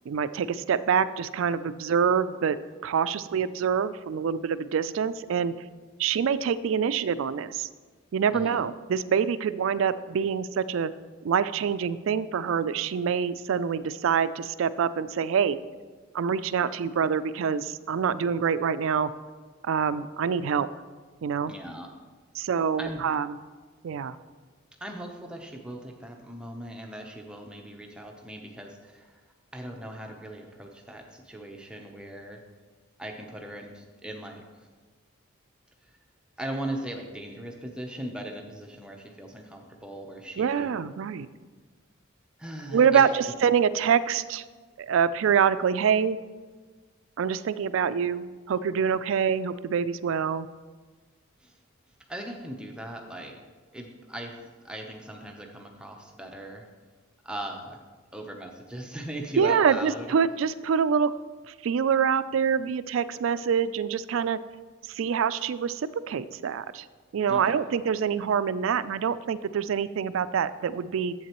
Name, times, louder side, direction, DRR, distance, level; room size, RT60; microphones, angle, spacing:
voice 1, 0.1-2.6 2.8-5.5 6.0-7.7 8.1-10.9 11.2-15.6 16.1-19.1 19.6-20.7 21.2-21.5 22.4-23.3 23.8-24.2 40.4-41.3 42.7-44.4 44.8-46.2 47.2-50.5 59.4-61.1 61.5-64.4 64.9-66.8 67.1-71.1, right 7 dB, 80° right, 14 dB, 0.3 m, -25 dB
voice 2, 8.3-8.6 21.5-21.9 22.8-23.0 24.8-29.2 29.5-32.4 33.0-34.7 35.8-35.9 36.4-40.7 42.4-43.3 51.4-51.6 52.1-53.4 53.7-56.7 57.2-57.8 58.1-60.1 67.3-67.7, right 1 dB, 5° right, 2 dB, 0.7 m, -39 dB
11.0 x 7.9 x 3.0 m, 1.4 s
head